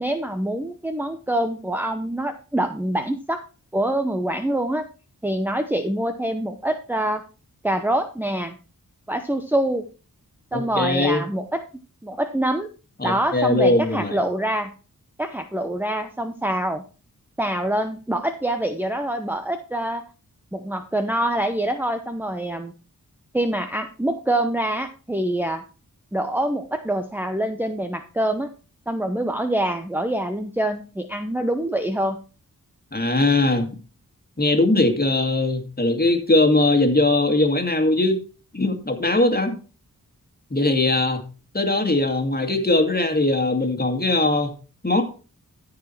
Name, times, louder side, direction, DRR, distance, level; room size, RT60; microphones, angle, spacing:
voice 1, 0.0-3.4 3.7-4.8 5.2-7.2 7.6-8.6 9.1-9.9 10.5-11.6 12.0-12.7 13.0-14.7 15.2-16.8 17.4-20.0 20.5-22.7 23.3-25.6 26.1-28.5 28.9-32.2, right 1 dB, 5° right, 5 dB, 0.8 m, -25 dB
voice 2, 10.5-11.2 13.0-14.2 32.9-33.7 34.4-38.2 38.5-39.5 40.5-41.2 41.5-44.5 44.8-45.0, left 2 dB, 25° left, 5 dB, 2.3 m, -20 dB
14.0 x 4.9 x 4.6 m, 0.35 s
cardioid pair, 55°, 36 cm